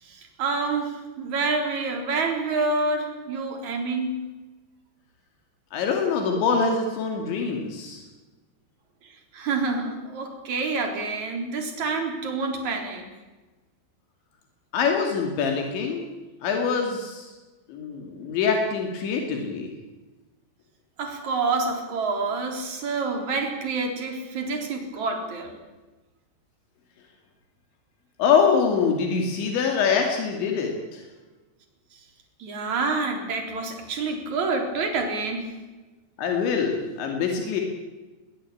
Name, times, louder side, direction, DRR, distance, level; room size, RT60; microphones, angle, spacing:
voice 1, 0.0-4.2 9.0-13.1 21.0-25.5 32.4-35.5, right 3 dB, 45° right, 3 dB, 4.9 m, -28 dB
voice 2, 5.7-8.0 14.7-16.0 16.4-17.3 17.7-19.7 28.2-31.0 36.2-37.6, left 5 dB, 85° left, 2 dB, 4.9 m, -24 dB
22.0 x 20.0 x 8.7 m, 1.2 s
omnidirectional pair, 5.1 m